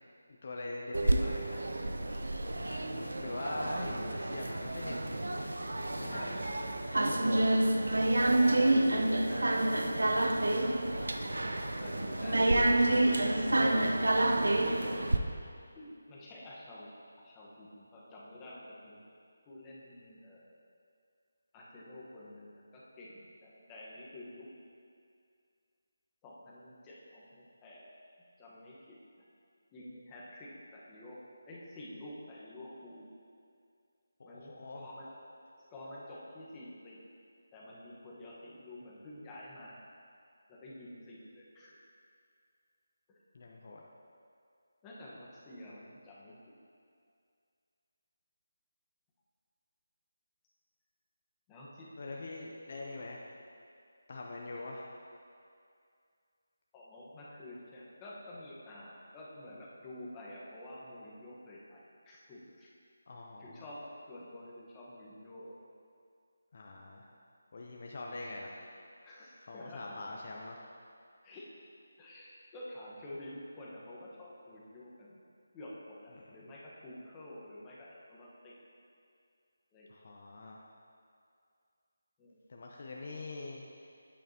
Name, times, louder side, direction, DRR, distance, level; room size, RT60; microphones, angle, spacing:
voice 1, 0.4-2.1 2.9-5.2 6.0-6.4 13.8-14.3 34.2-34.9 43.3-43.8 52.0-53.3 54.1-54.9 63.1-63.7 66.5-67.0 67.5-68.6 69.5-70.6 76.1-76.3 79.9-80.6 82.5-83.6, left 2 dB, 50° left, -2 dB, 0.7 m, -43 dB
sound 1, 0.9-15.2, right 1 dB, 85° right, 0.6 m, -29 dB
voice 2, 2.8-3.4 6.1-6.7 8.2-9.6 10.3-11.1 11.8-12.9 14.1-15.2 15.7-16.9 17.2-19.0 19.5-20.4 21.5-24.5 26.2-27.8 28.4-29.0 29.7-31.2 31.5-33.1 34.2-35.1 35.7-37.0 37.5-39.8 40.5-41.7 43.1-43.2 44.8-46.5 51.5-52.2 54.5-54.6 56.7-62.7 63.4-65.6 69.0-70.0 71.2-71.5 72.0-75.2 75.5-78.5 79.7-79.9 82.2-82.4, left 1 dB, 15° left, -6 dB, 1.2 m, -49 dB
9.0 x 8.6 x 2.9 m, 2.3 s
figure-of-eight pair, 160°, 0 cm